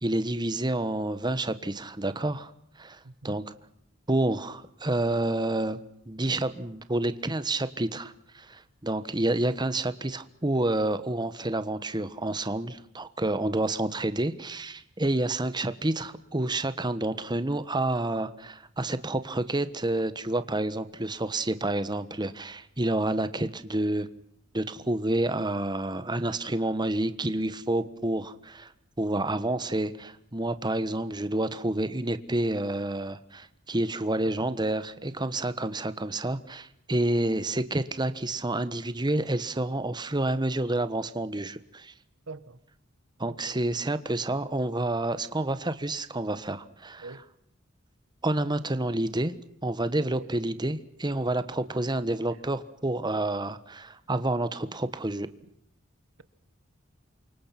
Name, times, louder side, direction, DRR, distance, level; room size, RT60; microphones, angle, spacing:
voice 1, 0.0-2.5 2.8-3.0 3.2-3.4 4.1-5.8 6.1-24.1 24.5-28.7 29.0-41.9 43.2-47.1 48.2-49.4 49.6-55.3, right 1 dB, 20° right, 1.3 m, -29 dB
voice 2, 3.0-3.4 34.4-34.6 42.3-42.6 43.3-43.6 47.0-47.2 50.2-50.3 52.3-52.4 54.2-54.3, right 3 dB, 90° right, 1.6 m, -44 dB
28.5 x 25.0 x 6.0 m
head